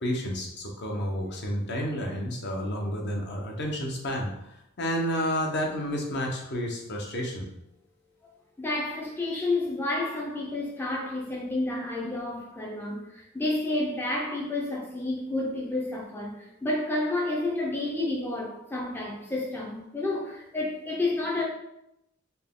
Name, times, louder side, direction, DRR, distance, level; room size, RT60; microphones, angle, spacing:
voice 1, 0.0-7.5, equal, 60° left, 0.8 m, -30 dB
voice 2, 8.6-21.4, left 2 dB, 10° left, 0.5 m, -30 dB
4.1 x 2.2 x 3.6 m
head